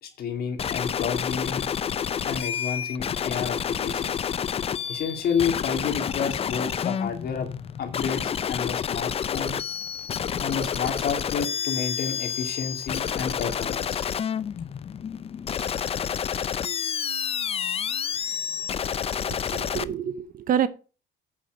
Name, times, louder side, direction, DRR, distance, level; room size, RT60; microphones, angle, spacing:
voice 1, 0.0-1.7 2.2-4.1 4.9-7.5 7.8-9.6 10.4-14.0, left 6 dB, 55° left, 2.4 m, -30 dB
sound 1, 0.6-19.8, left 8 dB, 30° left, 0.5 m, -29 dB
voice 2, 19.3-20.7, right 9 dB, 50° right, 0.9 m, -27 dB
8.5 x 5.8 x 6.3 m
cardioid pair, 110°, 19 cm